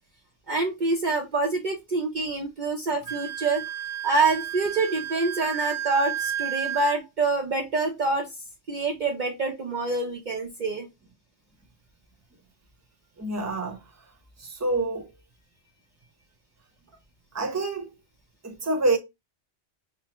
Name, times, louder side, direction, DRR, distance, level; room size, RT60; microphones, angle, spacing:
voice 1, 0.5-3.6 4.0-8.3 8.7-10.9, right 3 dB, 50° right, 0.7 m, -26 dB
Wind instrument woodwind instrument, 3.0-7.0, right 11 dB, 80° right, 0.9 m, -32 dB
voice 2, 13.2-13.8 14.4-15.1 17.3-17.9 18.4-19.0, right 2 dB, 15° right, 0.8 m, -27 dB
5.4 x 2.1 x 2.9 m
omnidirectional pair, 1.1 m